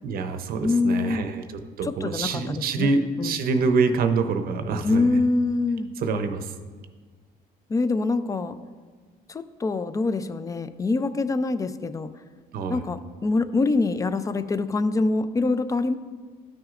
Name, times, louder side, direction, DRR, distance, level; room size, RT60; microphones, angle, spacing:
voice 1, 0.0-1.4 1.8-5.1 6.0-6.5 12.5-12.8, right 4 dB, 60° right, 8 dB, 0.7 m, -25 dB
voice 2, 0.6-1.3 1.8-3.4 4.8-5.9 7.7-8.6 9.3-12.1 12.7-16.0, left 3 dB, 20° left, 12 dB, 0.4 m, -25 dB
13.0 x 6.1 x 2.5 m, 1.5 s
cardioid pair, 110°, 17 cm